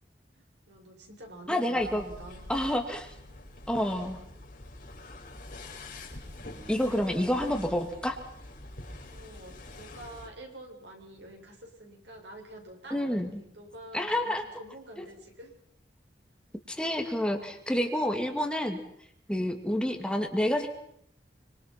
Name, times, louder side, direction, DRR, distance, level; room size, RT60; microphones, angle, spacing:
voice 1, 0.3-2.5 7.2-7.3 9.1-15.5, right 1 dB, 70° right, 1 dB, 7.9 m, -47 dB
voice 2, 1.5-2.0 2.5-3.1 3.7-4.2 6.7-8.2 12.9-13.4 13.9-14.5 16.7-18.8 19.3-20.7, left 1 dB, 5° left, 4 dB, 2.3 m, -28 dB
sound 1, 1.7-10.3, left 2 dB, 50° left, 6.6 m, -46 dB
26.5 x 26.0 x 6.0 m, 0.69 s
head